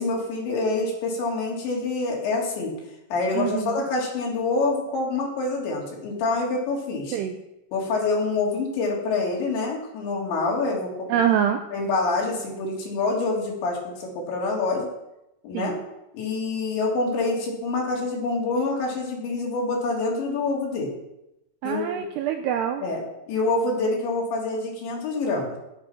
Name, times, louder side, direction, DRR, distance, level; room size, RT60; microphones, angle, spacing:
voice 1, 0.0-2.8 3.1-7.2 7.7-11.2 11.7-14.9 15.4-15.8 16.1-21.0 21.6-22.0 22.8-23.0 23.3-25.6, left 3 dB, 65° left, -2 dB, 5.4 m, -26 dB
voice 2, 3.3-3.8 7.1-7.4 11.1-11.6 15.5-15.8 21.6-22.8, right 9 dB, 85° right, 6 dB, 2.4 m, -25 dB
18.0 x 7.9 x 6.0 m, 0.89 s
omnidirectional pair, 5.6 m